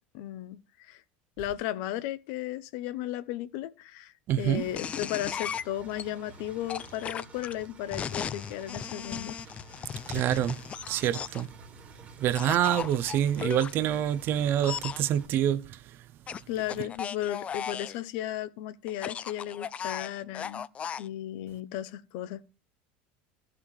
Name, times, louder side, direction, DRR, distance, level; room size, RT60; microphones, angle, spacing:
voice 1, 0.1-1.0 1.4-9.4 16.5-20.7 21.0-22.4, left 12 dB, 70° left, 0.7 m, -35 dB
voice 2, 4.3-4.7 10.1-10.6 10.9-11.5 12.2-15.8, right 11 dB, 45° right, 0.5 m, -26 dB
Engine, 4.6-15.3, right 3 dB, 30° right, 1.6 m, -52 dB
sound 1, 4.8-6.0 6.7-11.5 12.3-13.7 14.6-15.0 16.3-18.0 18.9-21.1, left 7 dB, 25° left, 0.3 m, -36 dB
14.0 x 5.9 x 3.2 m
supercardioid pair, 135°, 5 cm